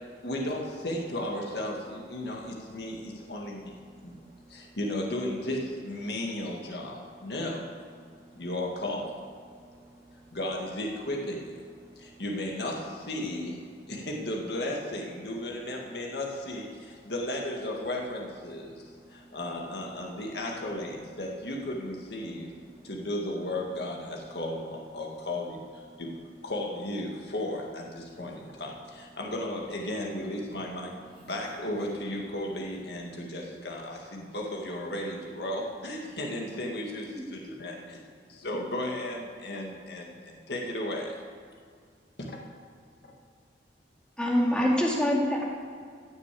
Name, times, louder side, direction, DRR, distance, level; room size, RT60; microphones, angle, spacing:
voice 1, 0.2-3.7 4.0-4.1 4.5-7.6 8.4-9.2 10.3-11.6 12.0-13.6 13.9-22.5 22.8-26.1 26.4-30.9 31.3-37.8 38.4-41.2 42.2-42.4 44.7-44.8, left 1 dB, 60° left, 0 dB, 1.9 m, -34 dB
voice 2, 4.0-4.6 8.1-8.4 9.6-10.4 11.8-12.2 18.7-19.4 22.8-22.9, right 2 dB, 20° right, -9 dB, 3.3 m, -56 dB
voice 3, 44.2-45.4, equal, 5° left, -3 dB, 2.3 m, -25 dB
16.0 x 6.8 x 8.4 m, 2.1 s
head